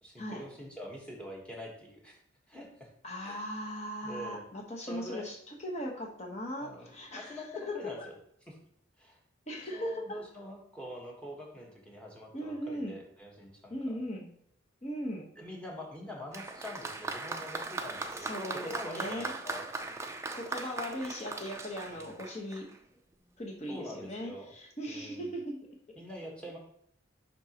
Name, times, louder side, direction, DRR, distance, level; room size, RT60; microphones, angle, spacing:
voice 1, 0.0-2.2 2.5-2.9 3.2-3.4 4.0-4.5 4.9-5.3 6.6-6.9 7.1-8.2 8.5-8.6 9.0-9.2 9.7-14.0 15.4-19.7 21.9-22.1 23.7-24.5 24.9-25.3 26.0-26.6, equal, 5° left, -1 dB, 1.2 m, -45 dB
voice 2, 3.0-5.4 5.6-8.1 9.5-10.2 12.3-13.0 13.7-14.3 14.8-15.3 18.2-19.3 20.3-22.7 23.4-25.6, equal, 35° left, 1 dB, 1.1 m, -38 dB
Applause, 16.3-22.8 23.7-23.8, right 3 dB, 15° right, 0.4 m, -39 dB
10.0 x 3.9 x 2.9 m, 0.71 s
head